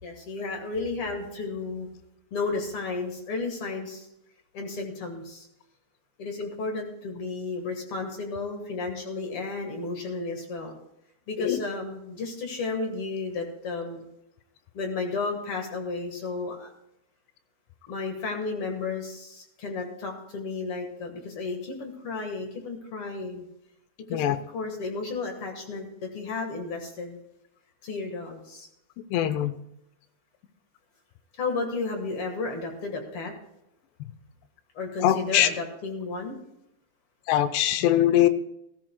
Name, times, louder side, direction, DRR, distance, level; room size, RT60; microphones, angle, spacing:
voice 1, 0.0-1.9 2.3-4.1 4.5-5.5 6.2-10.7 11.3-14.1 14.7-16.7 17.9-23.5 24.1-27.2 27.8-28.7 31.4-33.3 34.7-36.4, left 3 dB, 60° left, 3 dB, 1.5 m, -33 dB
voice 2, 29.1-29.5 35.0-35.5 37.3-38.3, left 12 dB, 85° left, 11 dB, 2.9 m, -22 dB
19.0 x 13.5 x 2.2 m, 0.82 s
omnidirectional pair, 4.8 m